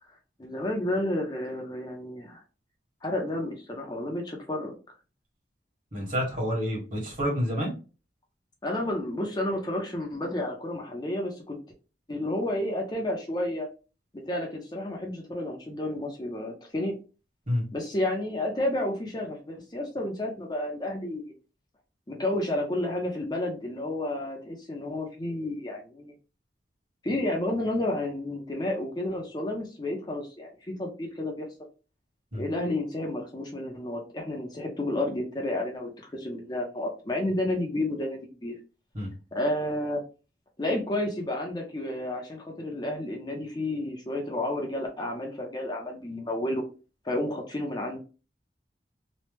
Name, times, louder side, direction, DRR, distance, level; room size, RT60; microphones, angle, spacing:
voice 1, 0.4-2.4 3.0-4.8 8.6-11.6 12.1-13.7 14.1-16.9 17.7-21.3 22.1-26.1 27.0-31.5 32.4-38.6 39.3-40.0 40.6-46.6 47.0-48.0, left 1 dB, 25° left, 1 dB, 0.6 m, -31 dB
voice 2, 5.9-7.7 17.5-17.6 32.3-32.4 38.9-39.1, equal, 50° right, -2 dB, 1.5 m, -28 dB
3.1 x 2.1 x 3.2 m, 0.33 s
head